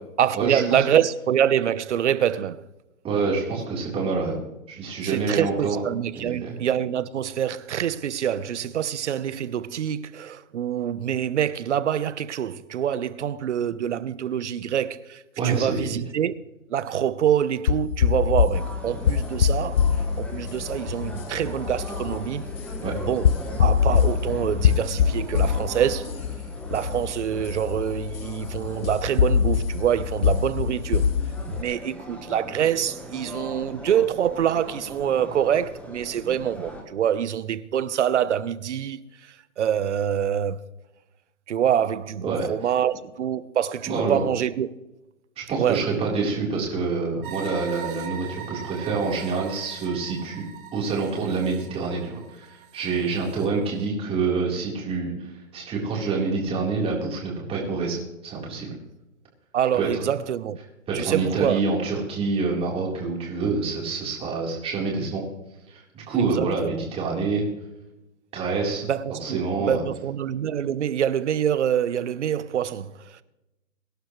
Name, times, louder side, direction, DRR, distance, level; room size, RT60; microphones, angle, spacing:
voice 1, 0.2-2.6 5.0-16.3 16.7-19.8 20.2-22.5 23.1-23.3 23.6-26.1 26.7-31.1 31.5-40.6 41.5-44.7 45.6-45.8 59.5-60.6 60.9-61.6 66.1-66.9 68.9-73.2, right 9 dB, 55° right, 1.0 m, -25 dB
voice 2, 3.0-4.4 4.7-5.8 6.1-6.6 15.4-15.9 22.8-22.9 42.2-42.5 43.9-44.2 45.4-50.4 50.7-58.0 58.2-58.7 59.7-60.0 60.9-65.2 65.7-67.4 68.3-68.8 69.2-69.9, right 4 dB, 15° right, 4.0 m, -27 dB
sound 1, 17.7-31.6, left 7 dB, 45° left, 0.5 m, -24 dB
sound 2, 18.5-36.8, equal, 5° left, 1.2 m, -40 dB
sound 3, 47.2-53.5, right 8 dB, 35° right, 2.3 m, -41 dB
23.5 x 11.5 x 3.2 m
hypercardioid pair, 150°, 42 cm